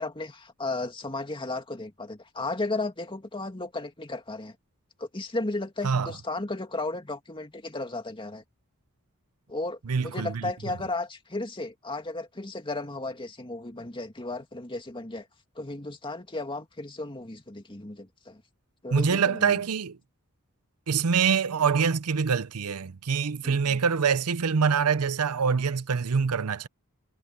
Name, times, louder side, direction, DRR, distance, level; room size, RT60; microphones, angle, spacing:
voice 1, 0.0-4.6 5.0-8.4 9.5-15.3 15.6-18.4 18.8-19.6 23.4-23.8, left 2 dB, 25° left, 2.3 m, -34 dB
voice 2, 9.9-10.5 18.9-20.0 20.9-26.7, right 6 dB, 90° right, 0.7 m, -25 dB
head